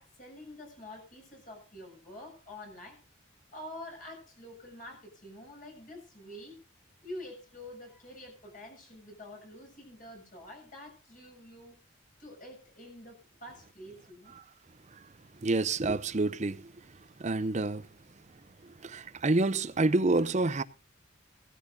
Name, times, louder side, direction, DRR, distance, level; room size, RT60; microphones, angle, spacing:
voice 1, 0.0-3.0 3.5-6.6 7.0-11.8 12.2-14.3, left 1 dB, 40° left, 7.3 m, -47 dB
voice 2, 15.4-16.6 17.2-17.8 18.8-20.6, right 2 dB, 35° right, 0.6 m, -27 dB
18.0 x 13.5 x 2.7 m
head